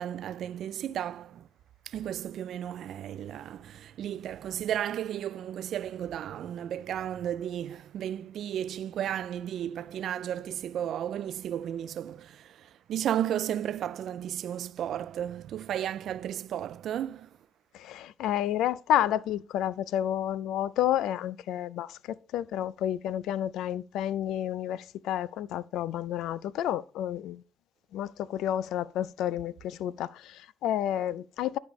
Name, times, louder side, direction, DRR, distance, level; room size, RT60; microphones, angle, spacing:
voice 1, 0.0-1.5 1.9-17.3, right 10 dB, 70° right, 0.3 m, -34 dB
voice 2, 17.7-22.0 22.3-27.4 27.9-31.6, left 11 dB, 85° left, 0.3 m, -30 dB
11.5 x 5.2 x 3.1 m
cardioid pair, 90°, 0 cm